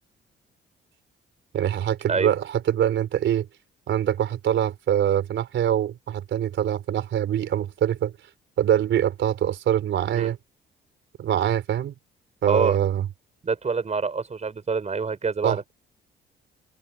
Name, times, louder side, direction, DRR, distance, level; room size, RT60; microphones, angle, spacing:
voice 1, 1.5-3.5 3.9-8.1 8.6-10.4 11.2-11.9 12.4-13.1 15.4-15.6, right 10 dB, 70° right, 4.2 m, -24 dB
voice 2, 12.4-12.8 13.4-15.7, right 5 dB, 35° right, 6.2 m, -26 dB
cardioid pair, 90°, 20 cm